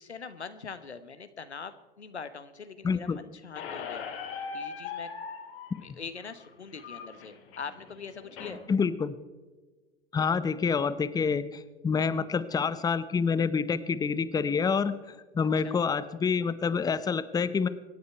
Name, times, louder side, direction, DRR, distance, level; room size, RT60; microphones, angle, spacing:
voice 1, 0.0-4.1 4.5-5.1 5.7-8.6 15.6-15.8, left 5 dB, 90° left, 11 dB, 1.0 m, -42 dB
voice 2, 2.8-3.2 8.7-9.1 10.1-17.7, left 5 dB, 10° left, 14 dB, 0.7 m, -27 dB
Squeak, 3.5-8.6, left 6 dB, 65° left, 2.9 m, -40 dB
25.5 x 9.5 x 4.5 m, 1.3 s
figure-of-eight pair, 90°, 32 cm